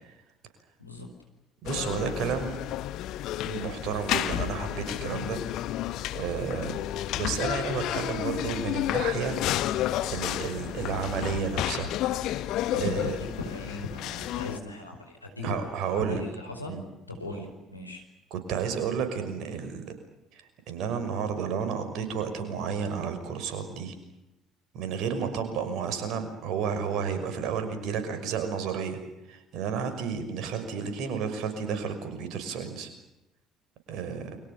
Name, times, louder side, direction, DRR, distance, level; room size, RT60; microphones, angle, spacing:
sound 1, 1.6-14.6, left 13 dB, 55° left, 1.2 m, -31 dB
voice 1, 1.6-2.6 3.4-5.4 6.1-6.8 7.1-9.4 9.6-9.7 10.1-12.0 12.3-12.5 12.8-13.2 15.4-16.2 16.7-16.8 17.3-17.5 18.3-19.9 20.3-23.9 24.7-29.0 29.3-32.9 33.9-34.4, right 6 dB, 55° right, 8 dB, 5.8 m, -31 dB
voice 2, 12.7-18.0, left 2 dB, 90° left, 2 dB, 4.8 m, -39 dB
29.5 x 25.0 x 6.9 m, 0.93 s
figure-of-eight pair, 55°, 0 cm